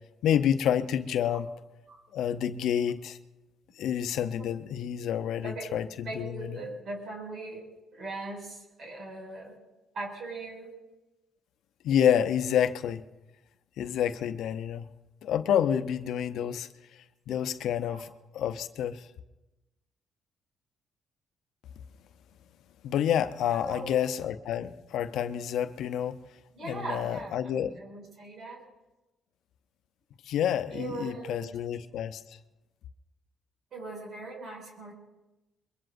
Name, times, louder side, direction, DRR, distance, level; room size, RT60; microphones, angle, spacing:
voice 1, 0.2-1.5 2.1-3.2 3.8-5.9 6.1-6.6 11.8-13.0 13.8-14.9 15.2-16.7 17.3-19.1 22.8-26.2 26.6-27.7 30.2-32.2, left 9 dB, 80° left, 0.7 m, -28 dB
voice 2, 5.4-5.7 6.0-9.6 9.9-10.7 17.9-18.0 23.5-24.1 26.5-28.6 30.7-31.6 33.7-34.9, right 2 dB, 60° right, 6.1 m, -40 dB
23.5 x 22.0 x 2.6 m
cardioid pair, 90°, 0 cm